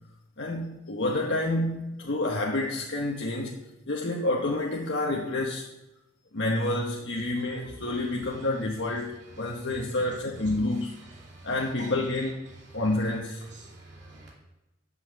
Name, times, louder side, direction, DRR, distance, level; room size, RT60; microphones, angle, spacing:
voice 1, 0.4-3.5 3.9-5.7 6.3-10.9 11.4-13.4, left 2 dB, 65° left, -1 dB, 1.1 m, -29 dB
voice 2, 11.0-11.5 11.8-11.9 13.5-14.3, right 2 dB, 60° right, -3 dB, 2.6 m, -48 dB
9.9 x 5.6 x 7.5 m, 0.96 s
head